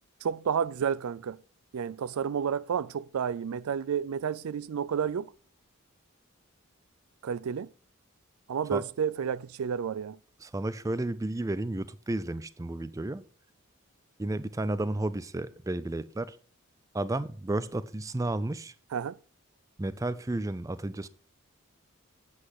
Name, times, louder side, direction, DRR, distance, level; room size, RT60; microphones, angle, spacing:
voice 1, 0.2-1.4 1.7-5.3 7.2-7.7 8.5-10.2 18.9-19.2, right 7 dB, 85° right, 0.4 m, -31 dB
voice 2, 10.4-13.2 14.2-16.4 16.9-18.7 19.8-21.1, right 2 dB, 15° right, 0.4 m, -32 dB
8.5 x 7.9 x 4.8 m
head